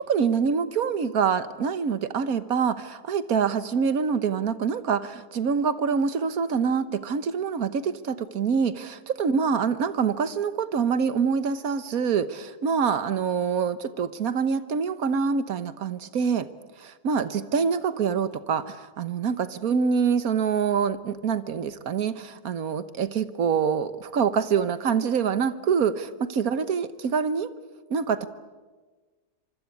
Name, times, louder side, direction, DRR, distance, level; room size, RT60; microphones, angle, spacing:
voice 1, 0.0-16.5 16.8-27.5 27.9-28.3, right 6 dB, 65° right, 13 dB, 1.6 m, -25 dB
26.0 x 24.5 x 8.6 m, 1.3 s
omnidirectional pair, 1.7 m